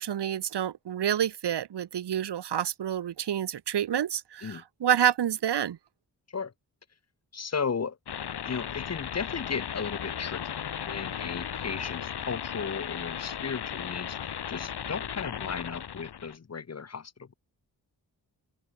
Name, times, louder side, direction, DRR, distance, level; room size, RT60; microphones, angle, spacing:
voice 1, 0.0-5.8, right 10 dB, 80° right, 1.2 m, -28 dB
voice 2, 7.3-8.0 8.4-10.4 10.9-17.3, left 5 dB, 40° left, 1.2 m, -35 dB
sound 1, 8.1-16.4, left 8 dB, 70° left, 1.6 m, -36 dB
open air
wide cardioid pair, 105°, 40 cm